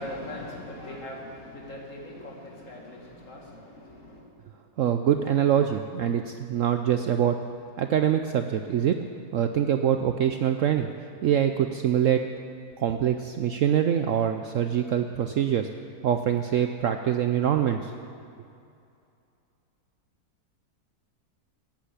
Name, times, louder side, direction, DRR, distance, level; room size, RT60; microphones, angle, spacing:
voice 1, 0.0-3.0 3.3-4.2, left 1 dB, 50° left, -1 dB, 2.4 m, -40 dB
voice 2, 4.8-7.4 7.8-9.0 9.3-10.9 11.2-12.2 12.8-15.7 16.0-17.9, right 9 dB, 65° right, 7 dB, 0.8 m, -24 dB
13.5 x 8.8 x 8.3 m, 2.5 s
omnidirectional pair, 1.8 m